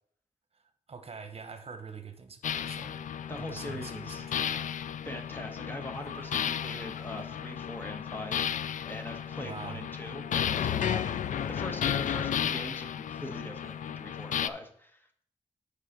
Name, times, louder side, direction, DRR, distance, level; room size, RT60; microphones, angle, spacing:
voice 1, 0.5-3.1 3.4-4.6 9.4-9.9, right 5 dB, 50° right, 8 dB, 0.9 m, -45 dB
sound 1, 2.4-14.5, left 9 dB, 80° left, 0.4 m, -33 dB
voice 2, 3.3-4.2 5.0-11.2 11.5-15.2, left 1 dB, 15° left, 4 dB, 1.2 m, -42 dB
Laughter, 5.9-14.2, left 4 dB, 60° left, 1.1 m, -53 dB
6.4 x 4.9 x 6.6 m, 0.64 s
wide cardioid pair, 85°, 13 cm